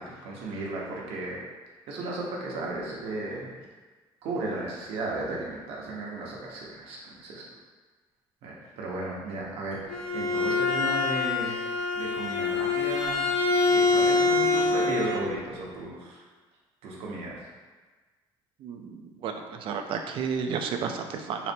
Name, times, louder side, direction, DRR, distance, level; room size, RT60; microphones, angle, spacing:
voice 1, 0.0-1.4 1.9-3.5 4.2-7.4 8.4-11.6 11.9-13.2 13.5-16.2 16.8-17.5, right 2 dB, 80° right, -4 dB, 0.9 m, -35 dB
Bowed string instrument, 9.7-15.2, left 3 dB, 70° left, 1.4 m, -25 dB
voice 2, 18.6-21.5, right 6 dB, 60° right, 5 dB, 0.4 m, -32 dB
4.1 x 2.1 x 4.3 m, 1.3 s
cardioid pair, 115°, 10 cm